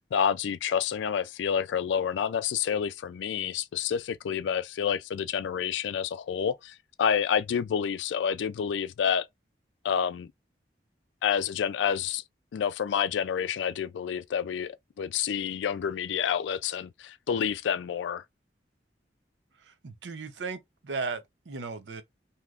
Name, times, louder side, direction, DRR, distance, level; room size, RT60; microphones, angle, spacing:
voice 1, 0.1-9.3 9.8-10.3 11.2-12.2 12.5-18.2, left 7 dB, 80° left, 0.3 m, -29 dB
voice 2, 19.6-22.0, right 4 dB, 80° right, 0.6 m, -36 dB
2.8 x 2.4 x 3.2 m
head